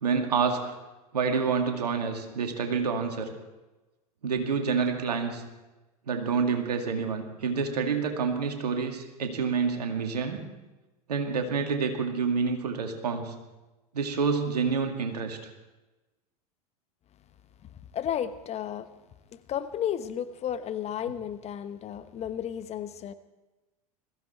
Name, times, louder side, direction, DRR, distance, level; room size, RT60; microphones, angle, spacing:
voice 1, 0.0-0.6 1.1-3.3 4.2-5.4 6.1-10.4 11.1-13.3 13.9-15.5, right 5 dB, 80° right, 4 dB, 2.4 m, -28 dB
voice 2, 17.7-18.9 19.3-23.1, left 9 dB, 35° left, 12 dB, 1.0 m, -33 dB
21.0 x 15.0 x 4.5 m, 1.1 s
hypercardioid pair, 90°, 20 cm